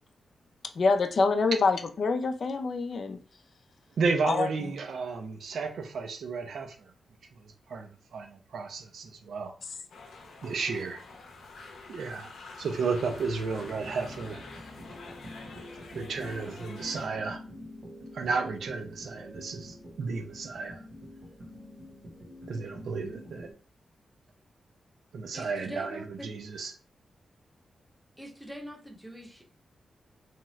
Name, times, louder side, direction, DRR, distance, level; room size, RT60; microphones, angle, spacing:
voice 1, 0.8-3.2 4.2-4.5, left 4 dB, 55° left, 0.4 m, -26 dB
voice 2, 4.0-6.9 7.4-9.5 10.4-11.0 11.9-12.3 12.6-14.4 15.9-17.4 18.1-20.8 22.5-23.5 25.1-26.7, right 4 dB, 75° right, 0.5 m, -33 dB
sound 1, 9.9-17.1, left 3 dB, 90° left, 0.7 m, -47 dB
sound 2, 13.5-23.5, left 1 dB, 45° right, 0.9 m, -46 dB
voice 3, 25.3-26.3 28.2-29.4, equal, 5° right, 0.7 m, -43 dB
2.8 x 2.3 x 3.0 m
wide cardioid pair, 125°, 0 cm